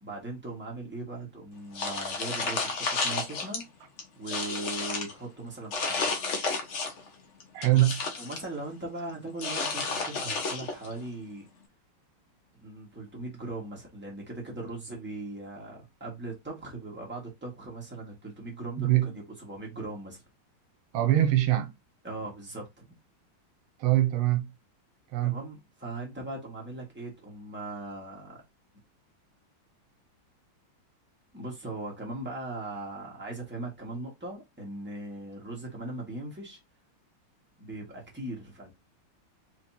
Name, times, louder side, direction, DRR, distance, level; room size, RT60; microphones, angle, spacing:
voice 1, 0.0-3.7 4.2-6.1 7.8-7.9 8.2-11.4 12.5-20.2 22.0-22.9 25.2-28.4 31.3-36.6 37.6-38.7, right 2 dB, 5° right, 1.8 m, -39 dB
sound 1, 1.7-3.6 4.0-5.1 5.7-7.1 7.4-8.5 9.4-10.9, left 4 dB, 55° left, 0.8 m, -31 dB
voice 2, 7.5-8.0 18.8-19.1 20.9-21.7 23.8-24.5 25.1-25.4, right 14 dB, 85° right, 1.6 m, -23 dB
4.5 x 3.6 x 2.9 m
omnidirectional pair, 2.3 m